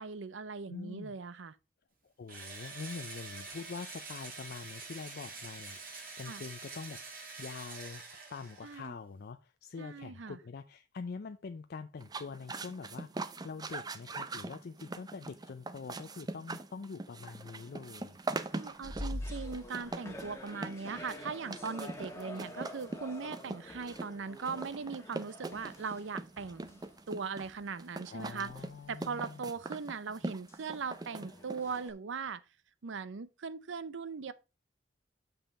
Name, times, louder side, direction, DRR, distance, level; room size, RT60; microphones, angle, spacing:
voice 1, 0.0-1.5 6.3-6.4 8.6-8.9 9.8-10.4 18.5-26.8 27.1-28.5 28.9-32.4 32.8-34.3, right 5 dB, 80° right, 0.6 m, -40 dB
voice 2, 0.7-1.1 2.0-7.0 7.4-8.0 8.3-18.2 28.1-29.5, left 4 dB, 55° left, 0.4 m, -45 dB
Engine / Drill, 2.3-8.9, right 4 dB, 50° right, 2.3 m, -46 dB
sound 1, 12.0-31.9, right 2 dB, 20° right, 0.5 m, -42 dB
sound 2, 17.2-18.0 18.4-27.1 27.4-27.7 28.3-29.1 29.5-31.9, left 1 dB, 15° left, 1.3 m, -46 dB
7.0 x 5.7 x 4.1 m
head